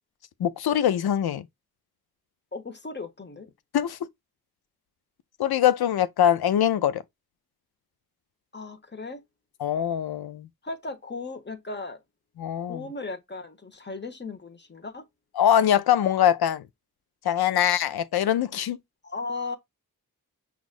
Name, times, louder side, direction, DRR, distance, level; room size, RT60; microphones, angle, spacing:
voice 1, 0.4-1.5 3.7-4.0 5.4-7.0 9.6-10.5 12.4-12.9 15.4-16.6 17.2-18.8, left 10 dB, 80° left, 0.5 m, -23 dB
voice 2, 2.5-3.5 8.5-9.2 10.6-12.0 12.6-15.0 19.0-19.6, left 3 dB, 30° left, 1.0 m, -36 dB
6.0 x 2.5 x 2.4 m
cardioid pair, 45°, 37 cm